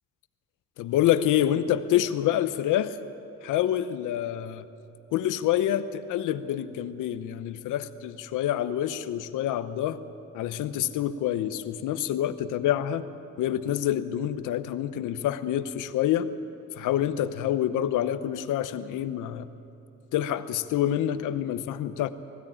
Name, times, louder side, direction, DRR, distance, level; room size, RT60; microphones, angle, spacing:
voice 1, 0.8-3.0 3.4-4.7 5.1-10.0 10.3-13.1 13.4-16.3 16.8-19.5 20.1-22.1, left 11 dB, 90° left, 12 dB, 0.9 m, -27 dB
20.0 x 16.0 x 8.8 m, 3.0 s
cardioid pair, 90°, 30 cm